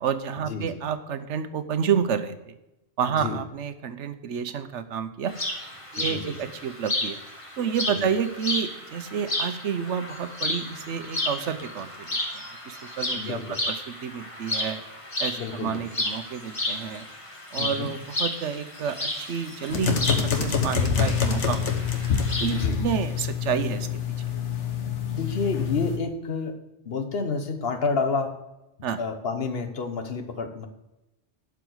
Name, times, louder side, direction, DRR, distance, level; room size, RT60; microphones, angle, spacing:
voice 1, 0.0-2.6 3.0-5.3 5.9-7.2 7.6-14.8 15.2-17.0 17.5-21.7 22.4-23.9 28.8-29.0, right 7 dB, 85° right, 10 dB, 1.1 m, -30 dB
voice 2, 3.1-3.4 6.0-6.4 7.9-8.1 13.1-13.6 15.4-15.8 17.6-17.9 22.5-22.8 25.1-28.4 29.0-30.7, left 4 dB, 60° left, 7 dB, 1.3 m, -30 dB
sound 1, 5.3-22.7, left 1 dB, 30° left, 1.4 m, -33 dB
sound 2, 19.7-26.0, left 7 dB, 85° left, 1.5 m, -26 dB
12.0 x 4.9 x 7.8 m, 0.96 s
omnidirectional pair, 1.2 m